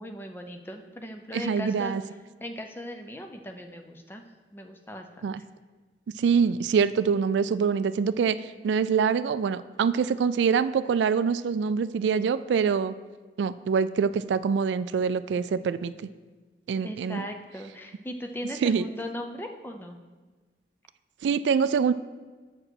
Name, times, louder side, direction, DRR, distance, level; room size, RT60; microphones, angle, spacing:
voice 1, 0.0-2.0 2.4-4.2 4.5-5.4 16.8-20.0, left 1 dB, 10° left, 4 dB, 0.5 m, -38 dB
voice 2, 1.3-2.0 5.2-5.4 6.2-12.9 13.4-15.9 16.7-17.3 18.6-18.8 21.2-21.9, right 6 dB, 85° right, 14 dB, 0.3 m, -25 dB
7.6 x 4.8 x 6.2 m, 1.3 s
head